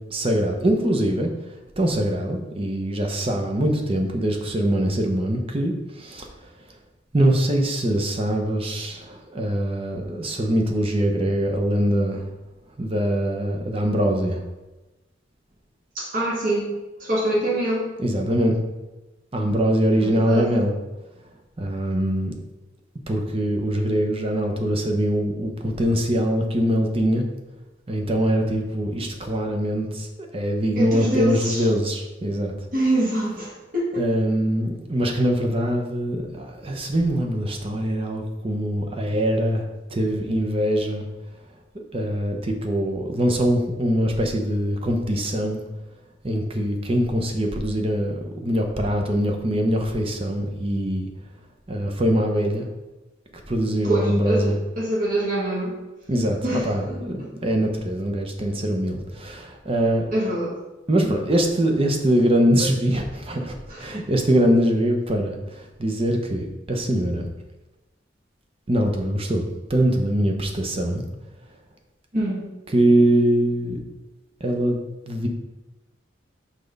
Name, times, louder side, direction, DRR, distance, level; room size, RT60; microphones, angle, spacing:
voice 1, 0.1-1.3 1.8-6.3 7.1-12.2 12.8-14.4 18.0-18.6 19.3-20.7 21.6-22.3 23.1-27.2 27.9-30.1 30.3-32.5 34.0-39.6 39.9-41.1 41.9-45.6 46.2-51.1 51.7-52.7 53.5-54.5 56.1-60.1 60.9-67.3 68.7-71.0 72.7-73.8 74.4-75.3, equal, 30° right, 3 dB, 0.8 m, -23 dB
voice 2, 16.0-16.7 17.0-17.9 20.0-20.5 30.8-31.7 32.7-34.1 53.8-55.7 56.4-57.3 60.1-60.6 63.7-63.9 72.1-72.5, right 1 dB, 45° right, -7 dB, 1.8 m, -25 dB
6.0 x 3.4 x 5.2 m, 1.1 s
head